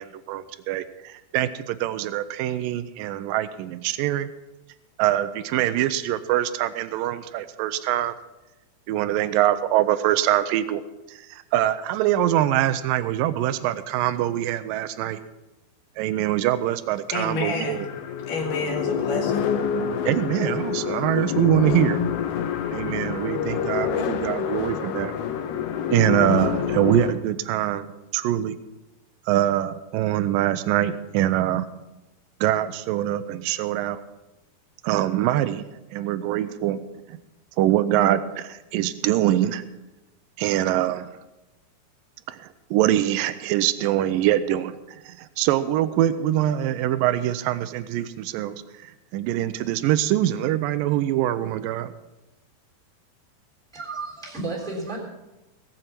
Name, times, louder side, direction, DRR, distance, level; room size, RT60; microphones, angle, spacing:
voice 1, 0.0-4.3 5.0-8.2 8.9-10.8 11.1-15.2 16.0-17.9 20.1-22.0 22.7-25.1 25.9-28.6 29.3-31.7 32.4-34.0 34.8-35.7 35.9-36.8 37.1-37.2 37.6-39.6 40.4-41.1 42.3-51.9, right 13 dB, 85° right, 12 dB, 2.0 m, -24 dB
sound 1, 16.3-16.4 17.5-27.1, left 8 dB, 80° left, 2.8 m, -27 dB
voice 2, 17.1-17.9 18.3-19.5, left 3 dB, 55° left, 0 dB, 3.6 m, -29 dB
voice 3, 53.7-55.0, right 3 dB, ahead, -2 dB, 2.9 m, -32 dB
18.0 x 8.0 x 6.0 m, 1.0 s
omnidirectional pair, 4.7 m